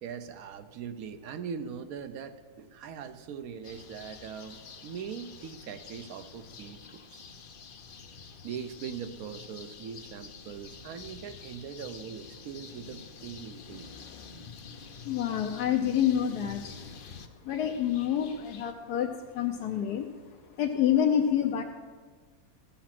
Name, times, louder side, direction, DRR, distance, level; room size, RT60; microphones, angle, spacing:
voice 1, 0.0-7.2 8.4-13.9, right 7 dB, 65° right, 11 dB, 1.0 m, -41 dB
sound 1, 3.6-18.7, left 5 dB, 60° left, 0.5 m, -48 dB
voice 2, 15.0-16.8 17.4-20.1 20.4-21.6, left 9 dB, 80° left, 2 dB, 1.2 m, -28 dB
15.0 x 7.3 x 5.9 m, 1.5 s
omnidirectional pair, 1.7 m